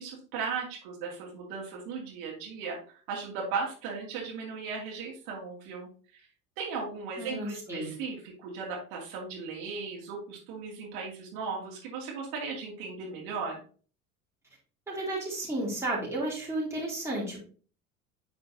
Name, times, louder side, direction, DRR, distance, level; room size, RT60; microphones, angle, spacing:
voice 1, 0.0-6.3 6.6-13.6, right 5 dB, 50° right, -2 dB, 2.6 m, -37 dB
voice 2, 7.2-7.9 14.9-17.4, right 1 dB, 5° right, -5 dB, 3.1 m, -33 dB
10.0 x 4.3 x 2.8 m, 0.39 s
figure-of-eight pair, 70°, 43 cm